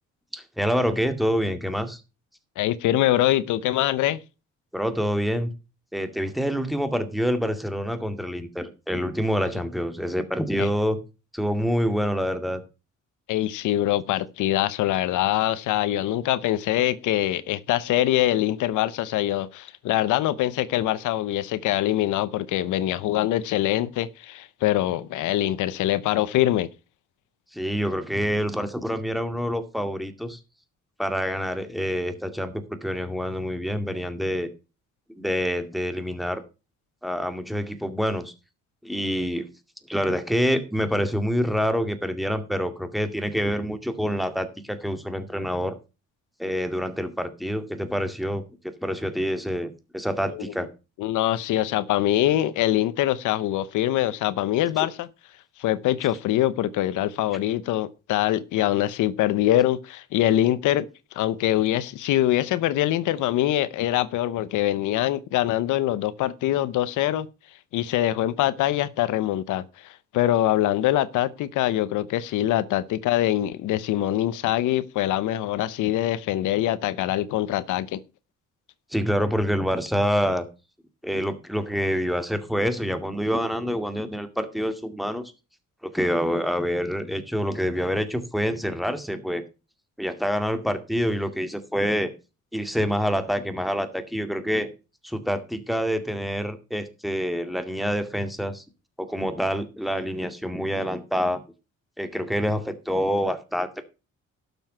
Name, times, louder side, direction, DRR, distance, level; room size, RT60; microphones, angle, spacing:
voice 1, 0.3-2.0 4.7-5.5 5.9-11.0 11.3-12.6 27.5-30.4 31.0-34.5 35.2-36.4 37.0-38.3 38.8-39.5 39.9-45.8 46.4-48.4 48.8-50.7 54.8-54.9 78.9-80.4 81.0-85.3 85.8-89.4 90.0-92.1 92.5-94.7 95.0-98.6 99.0-101.4 102.0-103.8, equal, ahead, 2.2 m, -26 dB
voice 2, 2.6-4.2 10.6-10.7 13.3-26.7 51.0-55.1 55.6-60.9 61.1-67.3 67.7-78.0, left 13 dB, 90° left, 0.8 m, -24 dB
12.0 x 7.1 x 5.5 m
cardioid pair, 90°, 30 cm